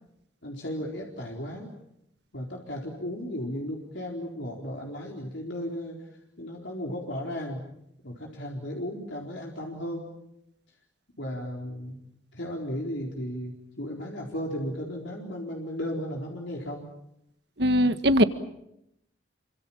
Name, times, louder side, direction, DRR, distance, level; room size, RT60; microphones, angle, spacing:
voice 1, 0.4-1.7 2.3-6.0 6.4-7.6 8.0-10.1 11.2-12.0 12.3-16.9, equal, 65° left, 0 dB, 4.2 m, -35 dB
voice 2, 17.6-18.2, equal, 55° right, 10 dB, 1.7 m, -20 dB
29.0 x 25.0 x 7.4 m, 0.80 s
head